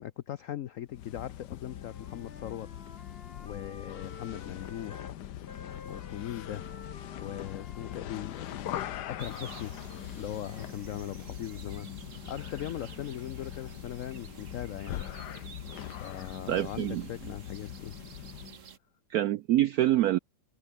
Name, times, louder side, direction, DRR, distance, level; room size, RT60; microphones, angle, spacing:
voice 1, 0.0-2.7 3.0-3.1 3.4-5.1 5.8-6.7 7.2-9.7 10.2-11.9 12.3-15.1 16.0-17.9, left 11 dB, 90° left, 0.7 m, -39 dB
sound 1, 0.9-18.6, left 11 dB, 65° left, 1.4 m, -42 dB
Wind instrument woodwind instrument, 1.6-5.2 5.5-9.7, left 4 dB, 30° left, 1.7 m, -51 dB
sound 2, 9.2-18.8, right 7 dB, 45° right, 1.5 m, -50 dB
voice 2, 16.5-17.1 19.1-20.2, right 14 dB, 85° right, 0.8 m, -26 dB
omnidirectional pair, 2.1 m